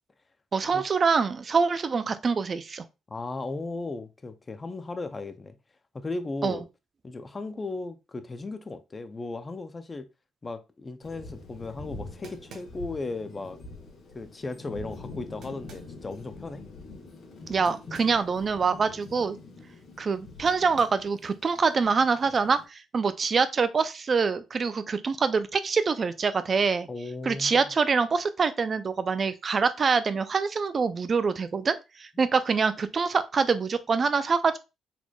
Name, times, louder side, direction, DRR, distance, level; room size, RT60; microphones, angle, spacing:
voice 1, 0.5-2.8 6.4-6.6 17.5-19.4 20.0-26.9 27.2-34.6, right 5 dB, 40° right, 0.4 m, -25 dB
voice 2, 3.1-5.6 5.9-6.6 7.0-10.1 10.4-13.6 14.1-16.6 26.9-27.7, left 3 dB, 25° left, 0.5 m, -36 dB
Thunder, 11.0-22.7, left 3 dB, 70° left, 1.4 m, -45 dB
sound 1, 11.6-11.7 12.2-13.0 15.4-16.0 17.6-18.2 18.6-18.7 20.5-21.1, right 5 dB, 75° right, 0.9 m, -50 dB
4.1 x 3.0 x 2.3 m
cardioid pair, 90°, 0 cm